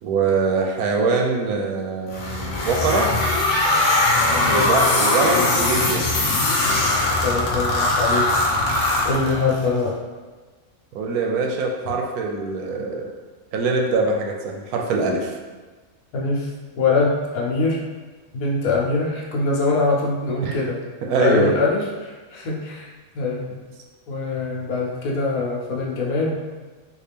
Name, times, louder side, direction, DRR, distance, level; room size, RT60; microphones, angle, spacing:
voice 1, 0.0-3.1 4.5-6.1 10.9-13.1 13.5-15.3 20.4-20.6 21.0-21.5, right 3 dB, 85° right, 1 dB, 1.1 m, -23 dB
sound 1, 2.1-9.6, left 2 dB, 65° left, 1.0 m, -20 dB
voice 2, 4.3-4.7 7.2-8.3 9.0-9.9 16.1-16.5 16.8-17.8 18.3-20.8 21.2-22.9 23.1-23.5 24.1-26.4, left 3 dB, 80° left, -3 dB, 1.1 m, -23 dB
3.5 x 2.4 x 3.4 m, 1.4 s
omnidirectional pair, 1.5 m